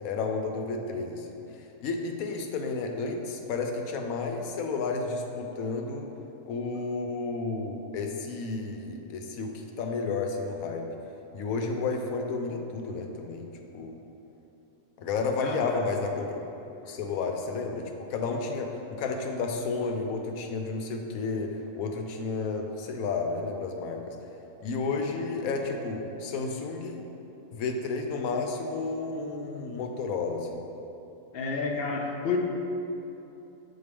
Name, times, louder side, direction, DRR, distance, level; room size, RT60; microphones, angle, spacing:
voice 1, 0.0-1.3 1.8-6.1 6.5-10.9 11.3-13.5 13.7-14.0 15.0-16.4 16.8-24.1 24.6-27.0 27.5-30.6, left 4 dB, 90° left, 3 dB, 1.0 m, -31 dB
voice 2, 15.4-15.7 16.9-17.0 31.3-32.4, left 4 dB, 60° left, 1 dB, 0.6 m, -30 dB
7.1 x 4.0 x 3.4 m, 2.9 s
omnidirectional pair, 1.4 m